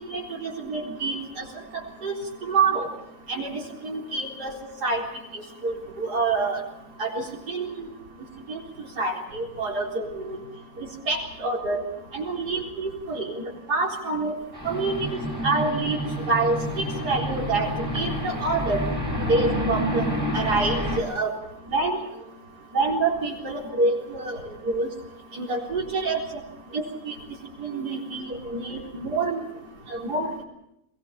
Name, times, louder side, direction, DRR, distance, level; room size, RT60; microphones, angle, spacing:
voice 1, 0.1-1.4 2.0-2.1 2.4-2.9 3.3-4.5 4.8-5.0 5.3-6.6 7.0-7.8 8.5-8.6 9.0-10.1 11.1-11.8 12.1-13.4 13.7-14.3 14.6-14.9 15.4-16.0 16.3-16.6 17.0-17.7 17.9-18.8 19.3-20.0 20.3-21.3 21.7-22.0 22.7-24.4 24.7-24.9 25.4-26.2 26.7-27.1 27.6-29.4 29.9-30.4, right 3 dB, 85° right, 0 dB, 4.6 m, -26 dB
sound 1, 14.5-21.0, equal, 10° right, 5.9 m, -28 dB
22.5 x 20.0 x 7.1 m, 0.83 s
omnidirectional pair, 1.7 m